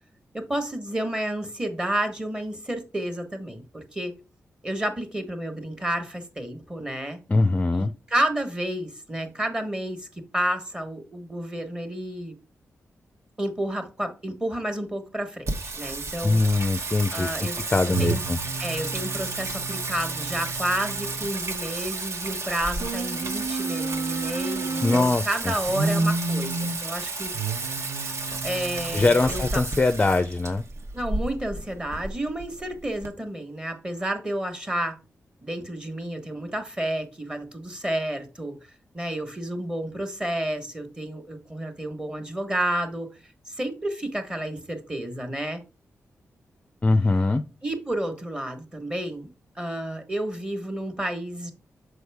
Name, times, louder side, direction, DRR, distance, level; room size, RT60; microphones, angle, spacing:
voice 1, 0.3-4.2 4.6-7.2 7.7-12.3 13.4-16.4 17.1-17.6 17.8-18.2 18.6-27.3 28.4-29.6 30.9-35.0 35.4-38.5 38.9-43.1 43.5-45.6 47.6-49.3 49.5-51.5, right 1 dB, 15° right, 1.2 m, -30 dB
voice 2, 7.3-7.9 16.2-18.4 24.8-25.5 28.9-30.6 46.8-47.4, left 3 dB, 25° left, 0.4 m, -22 dB
Singing, 15.5-33.1, right 3 dB, 60° right, 1.1 m, -30 dB
6.3 x 4.8 x 3.4 m
cardioid pair, 85°, 5 cm